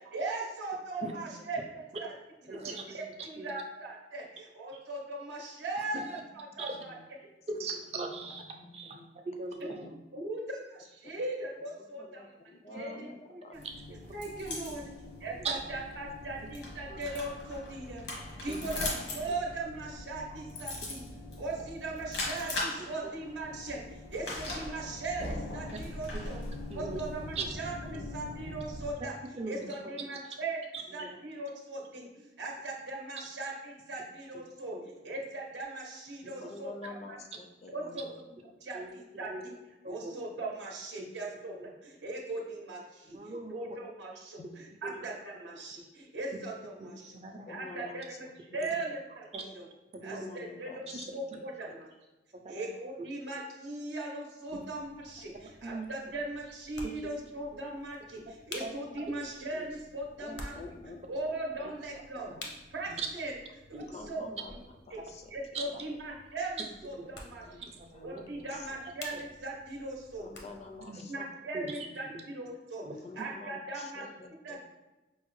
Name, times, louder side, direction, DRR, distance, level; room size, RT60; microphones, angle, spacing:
voice 1, 0.1-2.1 2.5-2.6 2.9-6.9 9.6-9.7 10.1-12.4 12.7-13.6 14.1-14.9 15.2-18.0 18.4-21.1 21.4-26.4 26.7-29.1 29.5-30.6 30.9-34.8 35.0-36.9 37.7-38.3 38.6-39.3 39.9-41.6 41.8-47.0 47.5-48.3 48.5-49.3 49.5-49.7 50.0-50.9 51.1-51.9 52.5-60.5 61.1-63.3 63.7-64.2 64.9-65.0 65.3-67.7 68.0-70.4 71.1-72.9 73.2-74.0 74.4-74.7, right 2 dB, 80° right, -2 dB, 0.7 m, -39 dB
voice 2, 2.5-3.5 5.9-6.0 6.6-6.8 7.5-8.4 8.7-9.8 13.8-14.1 15.4-15.8 16.9-17.0 18.5-18.6 19.3-19.4 23.0-23.1 26.7-27.0 27.4-27.5 29.4-29.7 30.0-30.1 30.7-31.1 34.7-34.8 36.2-36.3 38.7-39.4 39.8-40.1 41.0-41.1 41.6-41.7 43.1-43.6 44.8-45.0 46.8-46.9 47.2-47.5 48.6-48.7 49.3-49.4 49.9-50.3 50.9-51.1 52.3-52.7 54.5-54.6 55.6-55.9 56.8-56.9 58.3-58.4 58.6-58.7 59.5-59.6 62.9-63.1 63.7-63.9 65.5-65.8 66.6-67.1 67.6-68.5 69.1-69.2 70.8-71.0 71.5-72.2 72.8-73.3, right 3 dB, 35° right, 3 dB, 0.4 m, -40 dB
voice 3, 8.2-9.1 9.8-9.9 11.0-11.1 11.8-13.5 14.7-14.9 15.3-15.5 27.9-28.2 36.4-38.1 44.4-44.5 47.5-48.9 50.1-51.5 60.2-61.3 61.6-61.7 62.1-62.5 63.9-64.5 64.9-65.3 65.7-65.8 67.5-67.6 67.9-68.8 70.2-71.3 73.0-74.7, left 3 dB, 35° left, 4 dB, 0.4 m, -48 dB
sound 1, 13.5-28.9, left 2 dB, 85° left, 1.0 m, -40 dB
sound 2, 54.5-70.9, left 2 dB, 70° left, 0.6 m, -51 dB
5.3 x 2.1 x 3.0 m, 1.1 s
head